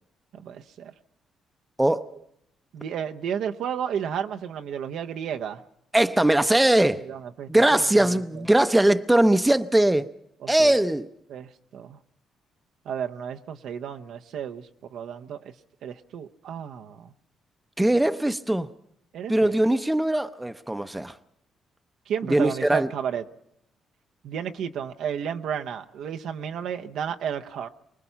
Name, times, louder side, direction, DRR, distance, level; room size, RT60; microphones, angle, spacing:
voice 1, 0.3-0.9 2.7-5.6 7.0-8.4 10.4-10.7 11.3-12.0 12.8-15.5 15.8-17.1 19.1-19.5 22.1-23.2 24.2-27.7, right 8 dB, 75° right, 0.9 m, -32 dB
voice 2, 1.8-2.1 5.9-7.1 7.5-10.1 10.5-11.1 17.8-18.7 19.3-21.1 22.3-22.9, right 1 dB, 10° right, 0.7 m, -21 dB
24.5 x 20.0 x 5.7 m
cardioid pair, 90°, 0 cm